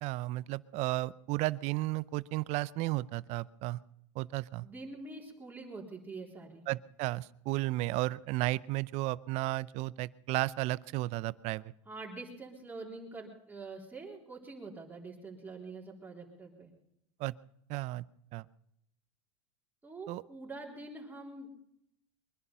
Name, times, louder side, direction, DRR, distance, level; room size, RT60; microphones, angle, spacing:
voice 1, 0.0-3.8 4.2-4.7 6.7-11.7 17.2-17.3 17.7-18.0 18.3-18.5 20.1-20.2, right 19 dB, 45° right, 19 dB, 0.6 m, -33 dB
voice 2, 4.6-6.6 11.9-16.7 19.8-21.5, right 3 dB, 15° right, -2 dB, 3.7 m, -45 dB
23.0 x 11.0 x 5.7 m, 0.78 s
supercardioid pair, 130°, 15 cm